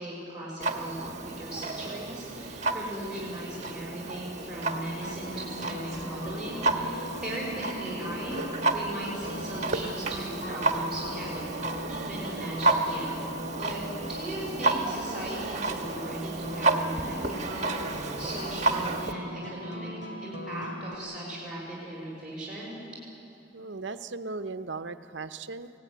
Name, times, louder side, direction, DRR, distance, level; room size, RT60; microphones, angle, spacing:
voice 1, 0.0-8.4 8.7-11.5 11.9-13.1 13.6-13.8 14.1-19.9 20.2-22.8, right 1 dB, 5° right, -5 dB, 5.5 m, -38 dB
Clock, 0.6-19.1, right 3 dB, 40° right, 1.5 m, -31 dB
sound 1, 4.7-21.0, equal, 65° left, 2.7 m, -40 dB
voice 2, 23.5-25.7, right 3 dB, 75° right, 10 dB, 0.8 m, -37 dB
24.0 x 17.5 x 9.7 m, 2.7 s
head